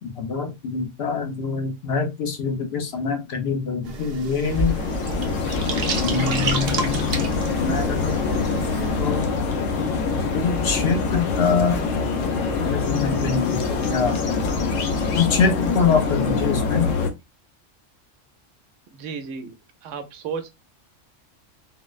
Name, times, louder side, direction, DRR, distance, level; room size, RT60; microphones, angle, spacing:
voice 1, 0.0-4.7 6.0-9.2 10.3-11.9 12.6-14.2 15.1-17.0, left 5 dB, 60° left, 0.9 m, -25 dB
sound 1, 3.8-9.0, right 4 dB, 60° right, 0.8 m, -31 dB
sound 2, 4.4-17.1, left 4 dB, 90° left, 1.0 m, -24 dB
voice 2, 18.9-19.5 19.8-20.5, right 6 dB, 85° right, 1.0 m, -33 dB
3.9 x 2.0 x 2.3 m
omnidirectional pair, 1.3 m